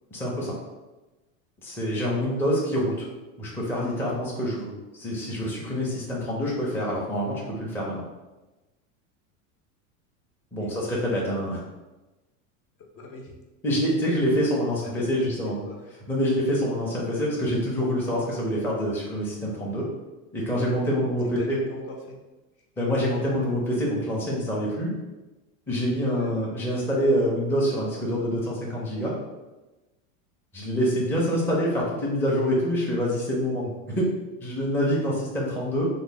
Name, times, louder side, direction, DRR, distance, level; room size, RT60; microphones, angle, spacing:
voice 1, 0.1-0.6 1.6-3.1 3.4-4.7 5.0-8.0 10.5-11.6 13.6-15.6 16.1-19.9 20.3-21.6 22.8-24.9 25.7-29.1 30.5-34.1 34.4-35.9, equal, 5° left, -5 dB, 0.5 m, -26 dB
voice 2, 10.6-10.9 12.9-13.4 14.8-15.1 15.4-15.8 21.4-22.2 26.0-26.3 34.6-34.7, left 2 dB, 50° left, 0 dB, 0.8 m, -40 dB
3.2 x 2.2 x 3.8 m, 1.1 s
supercardioid pair, 130°, 40 cm